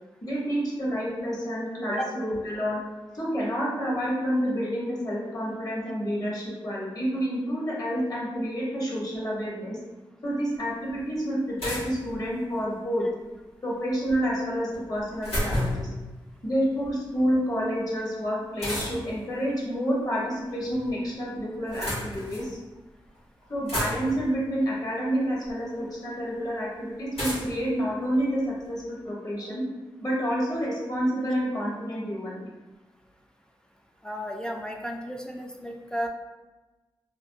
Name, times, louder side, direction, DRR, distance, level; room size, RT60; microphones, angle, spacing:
voice 1, 0.2-2.8 3.1-9.8 10.2-13.0 13.6-15.9 16.4-22.6 23.5-29.6 30.0-32.5, equal, 40° left, -5 dB, 1.0 m, -29 dB
sound 1, 10.6-10.7 11.6-12.7 14.7-15.9 18.6-19.2 20.3-20.9 21.5-22.5 23.1-23.2 23.4-24.3 25.4-25.5 27.1-28.7, left 1 dB, 85° left, 1.1 m, -32 dB
voice 2, 34.0-36.1, equal, 5° left, 1 dB, 0.3 m, -33 dB
2.5 x 2.1 x 2.6 m, 1.2 s
cardioid pair, 50°, 10 cm